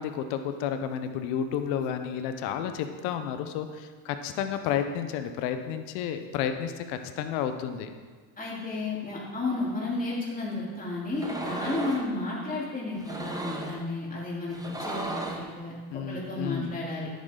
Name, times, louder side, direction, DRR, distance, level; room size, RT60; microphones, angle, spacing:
voice 1, 0.0-7.9 15.9-16.7, left 8 dB, 85° left, 8 dB, 1.0 m, -31 dB
voice 2, 8.4-15.7 16.1-17.1, left 2 dB, 15° left, -5 dB, 3.2 m, -32 dB
sound 1, 11.1-12.1 13.0-13.8 14.5-15.5, right 2 dB, 10° right, 1.1 m, -35 dB
10.5 x 8.5 x 3.9 m, 1.5 s
supercardioid pair, 105°, 47 cm